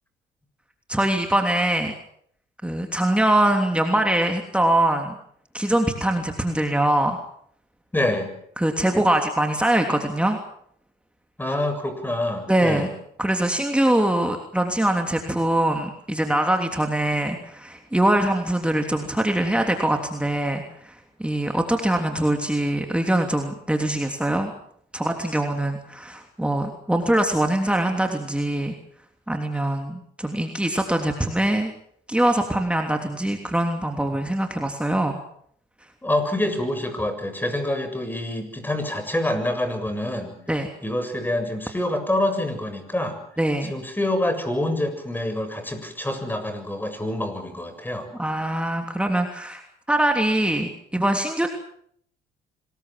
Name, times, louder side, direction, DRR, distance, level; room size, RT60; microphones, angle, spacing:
voice 1, 0.9-1.9 2.6-5.1 5.5-7.2 8.6-10.4 12.5-12.9 13.2-24.5 24.9-28.7 29.3-31.7 32.1-35.2 40.5-40.7 43.4-43.7 48.2-49.6 49.9-51.5, right 1 dB, 5° right, 4 dB, 3.2 m, -23 dB
voice 2, 7.9-8.3 11.4-12.9 36.0-40.4 40.8-43.2 43.7-48.1, left 1 dB, 10° left, 8 dB, 7.3 m, -26 dB
25.5 x 21.0 x 7.6 m, 0.66 s
supercardioid pair, 85°, 18 cm